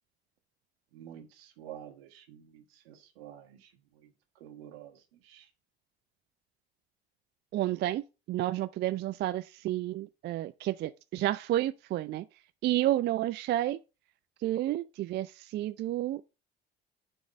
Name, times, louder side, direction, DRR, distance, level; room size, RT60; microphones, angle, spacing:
voice 1, 0.9-5.5, right 10 dB, 70° right, 1.6 m, -50 dB
voice 2, 7.5-8.0 8.3-12.3 12.6-13.8 14.4-16.2, right 14 dB, 35° right, 0.4 m, -30 dB
7.0 x 3.5 x 6.3 m
figure-of-eight pair, 60°, 31 cm